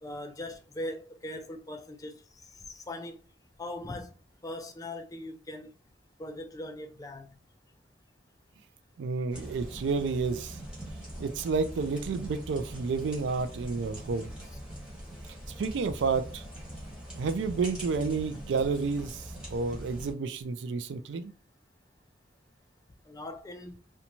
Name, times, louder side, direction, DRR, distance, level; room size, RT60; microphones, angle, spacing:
voice 1, 0.0-2.2 2.7-3.2 3.6-4.1 4.4-5.7 6.2-7.3 23.1-23.7, left 1 dB, 20° left, 0.3 m, -40 dB
voice 2, 9.0-10.6 11.2-14.3 15.6-16.4 17.2-19.2 19.5-21.3, right 4 dB, 85° right, 0.3 m, -30 dB
sound 1, 9.3-20.1, equal, 5° right, 1.0 m, -43 dB
2.6 x 2.2 x 2.9 m
head